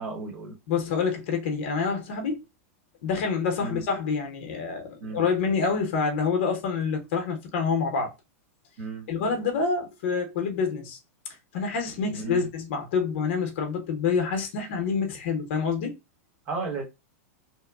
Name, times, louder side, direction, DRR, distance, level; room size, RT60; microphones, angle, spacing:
voice 1, 0.0-0.6 3.6-3.8 5.0-5.2 8.8-9.1 12.0-12.5 16.5-16.8, right 3 dB, 30° right, 1.0 m, -33 dB
voice 2, 0.7-2.4 3.0-8.1 9.1-11.0 11.5-15.9, left 5 dB, 50° left, 0.7 m, -27 dB
2.9 x 2.1 x 2.3 m
supercardioid pair, 175°, 8 cm